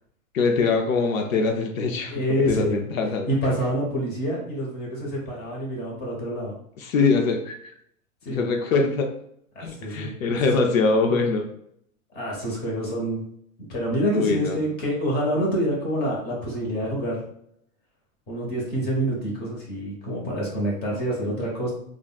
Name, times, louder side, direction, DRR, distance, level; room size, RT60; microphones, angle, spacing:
voice 1, 0.3-3.3 6.8-7.7 8.3-9.1 9.6-11.5 14.1-14.6, left 4 dB, 65° left, 3 dB, 0.6 m, -23 dB
voice 2, 2.1-2.7 3.3-6.5 8.2-8.5 9.5-10.4 12.1-13.2 13.7-17.2 18.3-21.7, equal, 20° left, -3 dB, 1.1 m, -27 dB
3.5 x 2.4 x 2.3 m, 0.70 s
hypercardioid pair, 130°, 44 cm